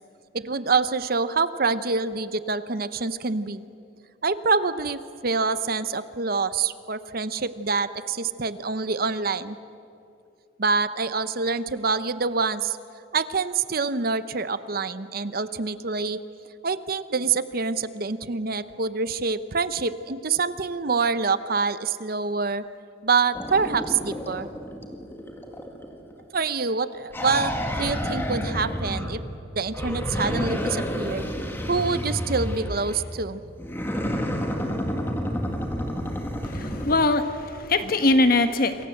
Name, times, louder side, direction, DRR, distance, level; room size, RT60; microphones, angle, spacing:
voice 1, 0.3-3.6 4.2-9.6 10.6-12.8 13.1-16.2 16.6-22.6 23.0-24.5 26.3-29.2 29.5-31.3 31.7-33.4, right 4 dB, 50° right, 13 dB, 0.8 m, -26 dB
sound 1, 23.3-26.2 27.1-29.3 29.7-33.0 33.6-37.0, equal, 10° left, 2.1 m, -30 dB
voice 2, 36.4-38.9, left 2 dB, 45° left, 9 dB, 1.4 m, -22 dB
27.5 x 23.0 x 7.9 m, 2.7 s
head